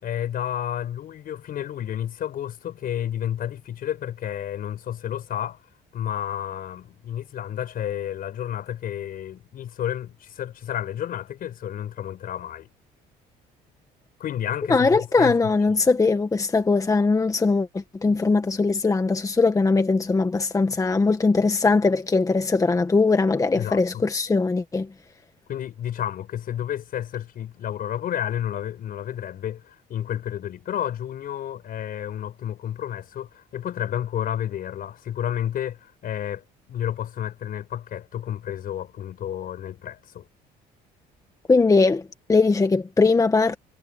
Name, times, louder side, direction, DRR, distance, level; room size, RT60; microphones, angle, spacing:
voice 1, 0.0-5.6 5.9-12.7 14.2-15.9 23.6-24.1 25.5-40.3, left 10 dB, 60° left, 5.0 m, -31 dB
voice 2, 14.7-24.9 41.5-42.0 42.3-43.6, left 3 dB, 20° left, 1.4 m, -20 dB
cardioid pair, 110°, 17 cm